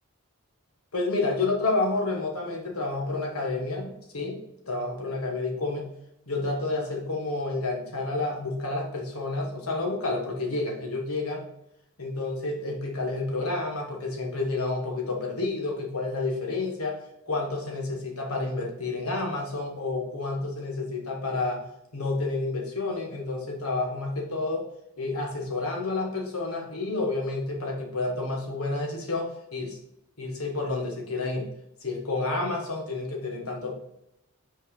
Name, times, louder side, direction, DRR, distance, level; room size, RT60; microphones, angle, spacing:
voice 1, 0.9-4.4 4.7-5.8 6.3-11.4 12.0-16.9 17.3-21.7 21.9-24.7 25.0-29.8 30.2-31.5 31.8-33.7, left 3 dB, 80° left, 1 dB, 1.6 m, -30 dB
5.7 x 4.6 x 3.9 m, 0.78 s
head